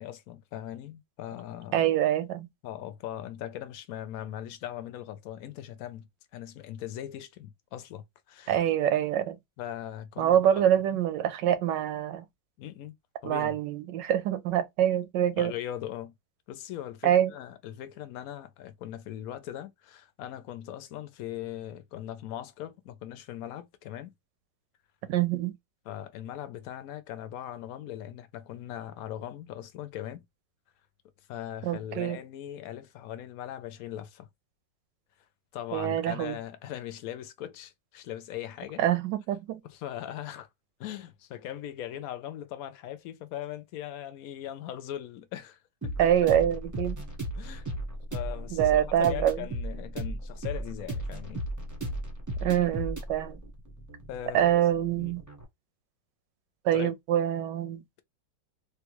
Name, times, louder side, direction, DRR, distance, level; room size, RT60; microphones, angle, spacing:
voice 1, 0.0-1.9 2.6-8.5 9.6-11.0 12.6-12.9 13.2-13.6 15.4-16.1 16.5-24.1 25.9-30.2 31.3-34.3 35.5-38.8 39.6-40.5 40.8-46.1 47.3-47.7 48.1-51.4 54.1-54.6 55.0-55.1 56.7-56.9, left 11 dB, 70° left, 0.9 m, -40 dB
voice 2, 1.7-2.5 8.5-9.4 10.2-12.2 13.2-15.5 17.0-17.3 25.1-25.6 31.6-32.2 35.7-36.3 38.8-39.6 46.0-47.0 48.5-49.4 52.4-53.4 54.3-55.2 56.6-58.0, right 11 dB, 85° right, 1.3 m, -25 dB
sound 1, 45.8-55.4, right 1 dB, 20° right, 0.4 m, -36 dB
3.4 x 2.3 x 2.9 m
omnidirectional pair, 1.9 m